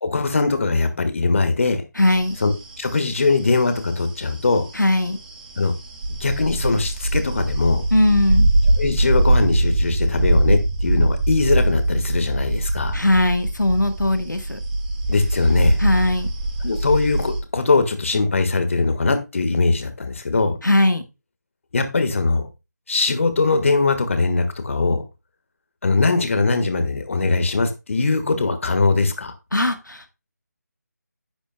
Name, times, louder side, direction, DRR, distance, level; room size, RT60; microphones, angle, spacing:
voice 1, 0.0-1.8 2.4-4.7 5.6-5.7 6.2-7.8 8.8-13.0 15.1-15.8 16.6-20.6 21.7-22.5 22.9-25.0 25.8-29.3, left 3 dB, 45° left, 1.5 m, -21 dB
voice 2, 2.0-2.4 4.7-5.2 7.9-8.5 12.9-14.6 15.8-16.3 20.6-21.0 29.5-30.0, left 1 dB, 85° left, 1.1 m, -19 dB
sound 1, 2.0-17.4, right 1 dB, 30° right, 1.8 m, -23 dB
10.5 x 9.1 x 2.2 m
figure-of-eight pair, 160°, 10 cm